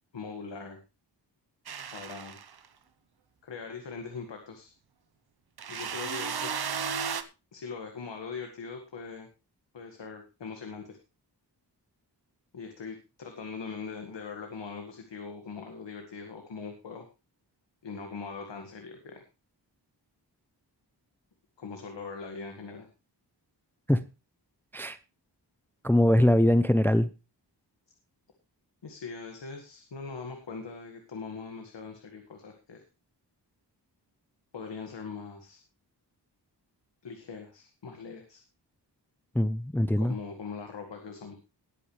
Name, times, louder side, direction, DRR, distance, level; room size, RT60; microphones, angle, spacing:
voice 1, 0.1-0.8 1.9-2.4 3.4-4.7 5.7-6.5 7.5-9.3 9.7-11.0 12.5-17.1 17.8-19.2 21.6-22.9 28.8-32.8 34.5-35.6 37.0-38.4 40.0-41.3, left 5 dB, 85° left, 2.0 m, -41 dB
sound 1, 1.7-2.7 5.6-7.2, right 6 dB, 60° right, 1.0 m, -34 dB
voice 2, 25.8-27.1 39.3-40.2, left 1 dB, 5° left, 0.6 m, -22 dB
19.5 x 8.5 x 3.3 m
wide cardioid pair, 130°, 42 cm